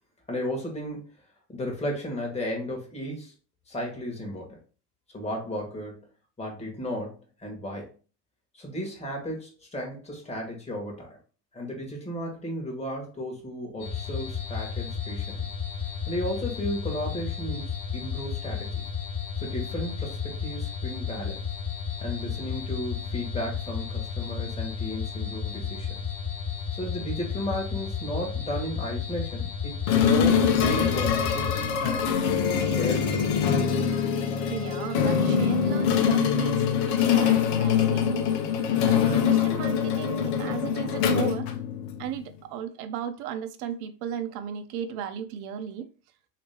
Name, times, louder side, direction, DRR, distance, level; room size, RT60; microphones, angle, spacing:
voice 1, 0.3-1.1 1.5-3.3 3.7-4.6 5.1-6.0 6.4-7.9 8.5-11.1 11.5-15.5 16.1-18.8 19.4-21.5 22.0-26.0 26.7-32.1 32.6-33.4, equal, 15° left, 1.4 m, -34 dB
sound 1, 13.8-31.7, left 7 dB, 40° left, 1.7 m, -33 dB
sound 2, 29.9-42.1, left 7 dB, 60° left, 0.8 m, -24 dB
voice 2, 34.5-38.1 38.9-41.5 42.0-45.9, right 9 dB, 60° right, 0.7 m, -35 dB
3.1 x 2.9 x 3.3 m
supercardioid pair, 105°, 50 cm